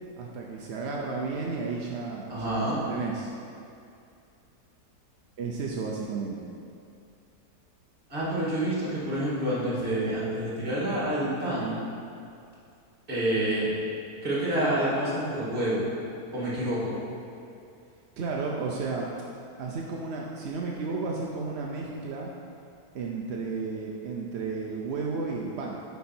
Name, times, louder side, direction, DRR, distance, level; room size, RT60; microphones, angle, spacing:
voice 1, 0.2-3.3 5.4-6.5 18.2-19.1 19.6-22.3 22.9-25.8, right 4 dB, 60° right, -2 dB, 0.7 m, -33 dB
voice 2, 2.3-2.8 8.1-11.8 13.1-13.7 14.2-15.8 16.3-17.0, right 1 dB, 35° right, -8 dB, 2.2 m, -28 dB
9.3 x 4.7 x 4.3 m, 2.5 s
omnidirectional pair, 1.6 m